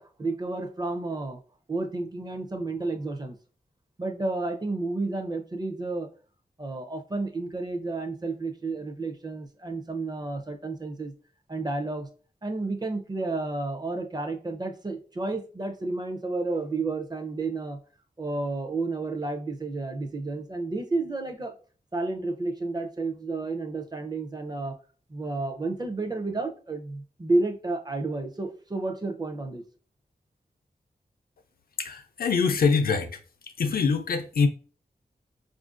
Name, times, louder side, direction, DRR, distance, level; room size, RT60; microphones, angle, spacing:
voice 1, 0.0-1.4 1.7-3.4 4.0-6.1 6.6-11.1 11.5-12.1 12.4-17.8 18.2-21.5 21.9-24.8 25.1-29.6, right 3 dB, 25° right, 0.5 m, -31 dB
voice 2, 31.8-33.2 33.6-34.5, left 5 dB, 70° left, 0.4 m, -24 dB
4.4 x 2.5 x 2.4 m
wide cardioid pair, 80°, 16 cm